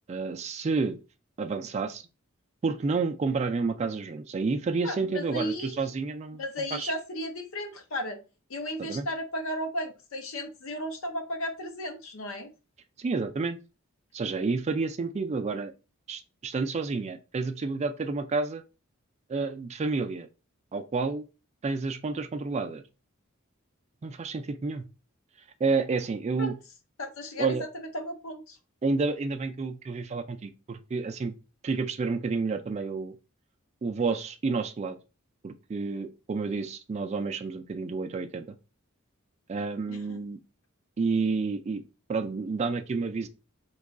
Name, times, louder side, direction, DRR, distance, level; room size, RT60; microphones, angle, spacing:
voice 1, 0.1-1.0 1.4-2.0 2.6-6.4 6.7-6.9 8.8-9.1 13.0-13.6 14.1-15.7 16.1-18.6 19.3-20.3 20.7-21.2 21.6-22.8 24.0-24.9 25.6-26.5 27.4-27.6 28.8-31.3 31.6-33.1 33.8-35.0 35.4-38.6 39.5-40.4 41.0-41.8 42.1-43.3, right 4 dB, 30° right, 0.3 m, -30 dB
voice 2, 4.8-5.8 6.4-8.2 8.5-12.5 26.4-26.5 27.0-27.5 27.7-28.6 39.9-40.2, equal, 75° left, 0.7 m, -34 dB
3.0 x 2.3 x 3.5 m
head